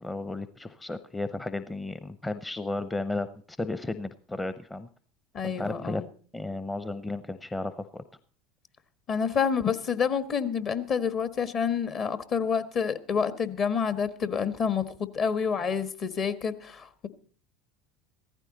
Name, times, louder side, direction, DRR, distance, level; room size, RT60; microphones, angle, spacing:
voice 1, 0.0-4.9 5.4-6.0 6.3-8.0, left 2 dB, 15° left, 12 dB, 0.7 m, -34 dB
voice 2, 5.3-6.1 9.1-17.1, left 6 dB, 45° left, 12 dB, 1.4 m, -28 dB
15.5 x 14.5 x 4.0 m, 0.43 s
hypercardioid pair, 80°, 0 cm